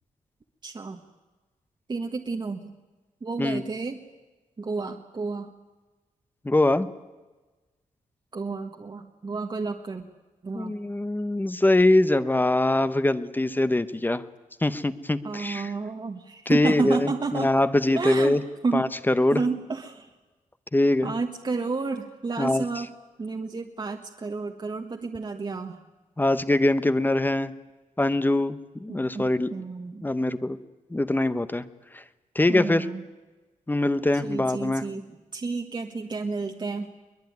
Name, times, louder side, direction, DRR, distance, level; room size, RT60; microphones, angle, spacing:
voice 1, 0.6-1.0 1.9-2.7 3.2-4.0 4.6-5.5 8.3-10.0 10.4-10.8 15.2-17.5 17.9-18.9 19.3-20.1 21.0-22.9 23.2-25.8 28.9-30.0 32.5-33.0 34.2-36.9, right 4 dB, 35° right, 3 dB, 1.4 m, -31 dB
voice 2, 6.4-6.9 10.5-14.2 14.6-15.7 16.5-18.4 18.7-19.4 20.7-21.1 22.4-22.6 26.2-27.5 28.0-29.5 30.0-30.6 30.9-31.6 31.9-32.0 32.3-32.9 33.7-34.8, left 2 dB, 15° left, 12 dB, 1.0 m, -23 dB
22.5 x 21.0 x 9.5 m, 1.2 s
wide cardioid pair, 115°, 14 cm